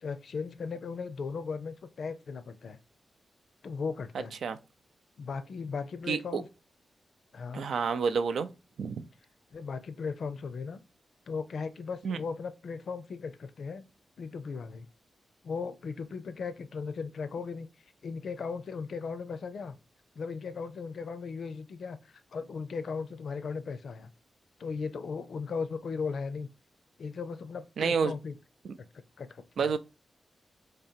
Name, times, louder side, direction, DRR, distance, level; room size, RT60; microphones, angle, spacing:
voice 1, 0.0-2.8 3.6-4.4 5.2-6.5 7.3-7.7 9.5-10.8 11.3-13.8 14.2-14.9 15.4-17.7 18.0-19.8 20.2-24.1 24.6-26.5 27.0-28.3 29.2-29.7, left 5 dB, 60° left, 0.5 m, -37 dB
voice 2, 6.1-6.4 7.5-8.5 8.8-9.0 12.0-12.2 27.8-28.1 28.6-28.8 29.6-29.8, right 5 dB, 80° right, 0.5 m, -29 dB
3.7 x 3.3 x 4.3 m
wide cardioid pair, 175°, 0 cm